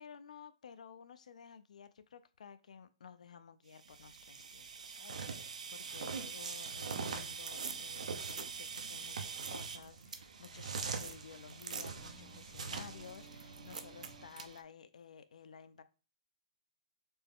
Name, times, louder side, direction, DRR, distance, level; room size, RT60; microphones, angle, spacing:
voice 1, 0.0-15.8, left 7 dB, 80° left, 0.5 m, -54 dB
sound 1, 3.7-14.6, right 6 dB, 90° right, 0.6 m, -46 dB
sound 2, 5.1-13.2, right 5 dB, 75° right, 0.9 m, -44 dB
sound 3, 6.7-14.3, right 2 dB, 50° right, 2.4 m, -59 dB
4.3 x 3.3 x 3.5 m
hypercardioid pair, 180°, 4 cm